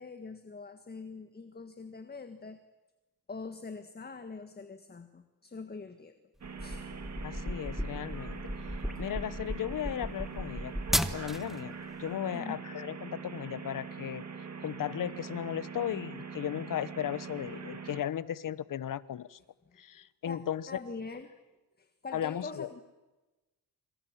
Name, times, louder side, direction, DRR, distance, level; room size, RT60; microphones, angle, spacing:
voice 1, 0.0-2.6 3.3-6.1 6.6-6.8 12.3-12.6 20.3-20.4 20.7-21.3 21.8-22.8, left 4 dB, 25° left, 9 dB, 1.6 m, -43 dB
sound 1, 6.4-11.6, equal, ahead, 1.4 m, -35 dB
sound 2, 6.4-18.0, right 5 dB, 40° right, 2.8 m, -43 dB
voice 2, 7.2-8.4 9.0-10.7 11.1-14.2 14.6-19.4 19.8-20.7 22.1-22.7, left 10 dB, 55° left, 18 dB, 1.1 m, -36 dB
27.0 x 27.0 x 7.4 m, 1.1 s
cardioid pair, 115°, 40 cm